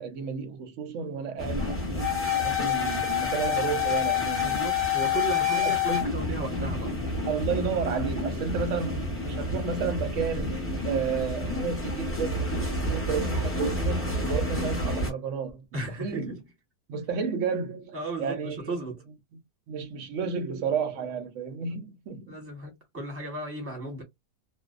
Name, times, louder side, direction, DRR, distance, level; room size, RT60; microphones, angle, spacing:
voice 1, 0.0-4.6 5.5-6.1 7.3-15.6 16.0-16.4 16.9-18.8 19.7-22.3, right 6 dB, 60° right, 0.8 m, -32 dB
sound 1, 1.4-15.1, left 4 dB, 10° left, 0.7 m, -28 dB
voice 2, 4.4-7.0 15.7-16.4 17.9-19.0 22.3-24.0, right 2 dB, 10° right, 0.8 m, -35 dB
2.6 x 2.1 x 2.4 m
omnidirectional pair, 1.7 m